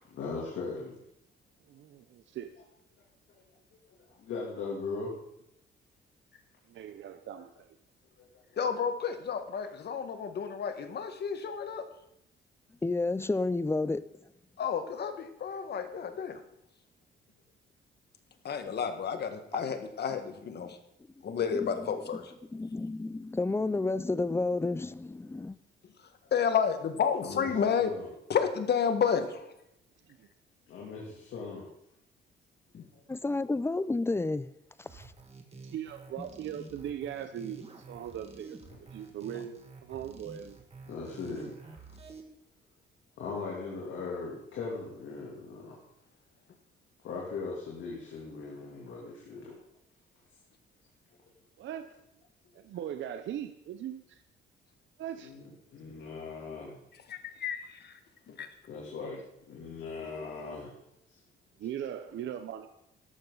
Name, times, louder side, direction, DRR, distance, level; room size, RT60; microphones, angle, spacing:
voice 1, 0.1-1.0 3.3-3.4 4.1-5.1 8.2-8.4 27.2-27.5 27.8-28.1 30.7-31.7 40.9-41.7 43.2-45.8 47.0-49.6 55.2-56.8 58.7-59.2 59.5-60.7 61.1-61.2, left 4 dB, 75° left, 3.0 m, -39 dB
voice 2, 1.7-2.5 6.7-7.7 30.1-30.3 35.6-40.6 51.6-51.9 52.5-54.2 55.0-55.3 61.6-62.7, right 10 dB, 70° right, 0.8 m, -40 dB
voice 3, 8.6-11.9 14.6-16.4 18.4-20.8 21.2-22.3 26.3-27.9 28.3-29.5 32.7-32.9 57.1-57.9 58.3-58.5, left 7 dB, 55° left, 1.7 m, -31 dB
voice 4, 12.8-14.0 21.5-21.9 22.5-25.6 33.1-34.5 34.8-35.1, left 3 dB, 10° left, 0.5 m, -31 dB
sound 1, 34.8-42.2, right 4 dB, 30° right, 2.1 m, -49 dB
13.5 x 11.5 x 4.0 m
cardioid pair, 90°, 20 cm